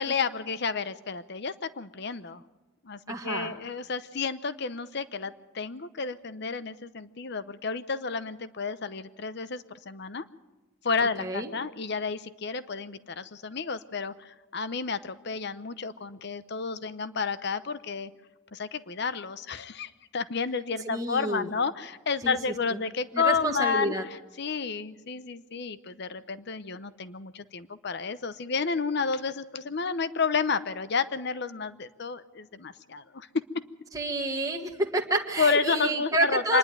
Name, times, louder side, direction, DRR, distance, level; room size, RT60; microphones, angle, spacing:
voice 1, 0.0-2.4 2.8-10.2 10.8-18.1 18.5-23.9 24.4-33.3 35.4-36.6, left 5 dB, 55° left, 14 dB, 0.8 m, -31 dB
voice 2, 3.1-3.6 11.0-11.5 20.8-21.5 22.2-22.3 23.1-24.0 33.9-36.6, right 2 dB, 15° right, 1 dB, 1.5 m, -29 dB
25.5 x 11.0 x 9.2 m, 1.1 s
head